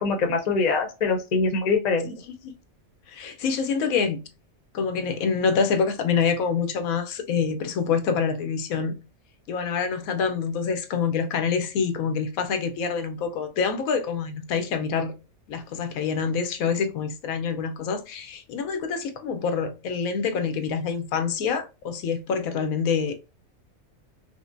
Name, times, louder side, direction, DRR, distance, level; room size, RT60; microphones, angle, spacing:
voice 1, 0.0-2.1, left 4 dB, 40° left, 0.7 m, -23 dB
voice 2, 3.1-4.2 4.7-8.9 9.5-15.1 15.5-23.3, left 6 dB, 85° left, 1.1 m, -26 dB
5.0 x 2.1 x 2.5 m
omnidirectional pair, 1.4 m